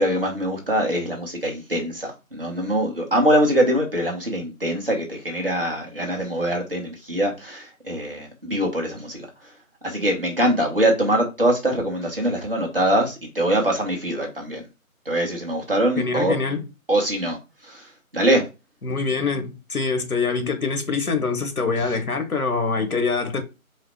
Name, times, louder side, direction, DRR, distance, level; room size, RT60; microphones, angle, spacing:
voice 1, 0.0-9.3 9.8-14.6 15.0-16.4 16.9-17.4 17.6-17.9 18.1-18.5, right 1 dB, 40° right, 1.3 m, -23 dB
voice 2, 16.0-16.6 18.8-23.4, left 4 dB, 90° left, 1.2 m, -24 dB
4.7 x 2.1 x 4.6 m
figure-of-eight pair, 180°, 43 cm